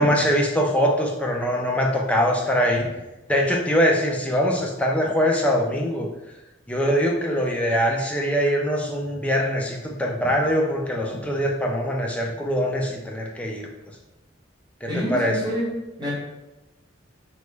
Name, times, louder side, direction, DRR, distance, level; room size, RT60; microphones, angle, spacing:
voice 1, 0.0-2.9 3.3-6.1 6.7-13.7 14.8-15.4, equal, 5° left, -1 dB, 0.3 m, -23 dB
voice 2, 14.9-16.1, equal, 20° right, -8 dB, 1.2 m, -28 dB
3.0 x 2.2 x 3.2 m, 1.0 s
head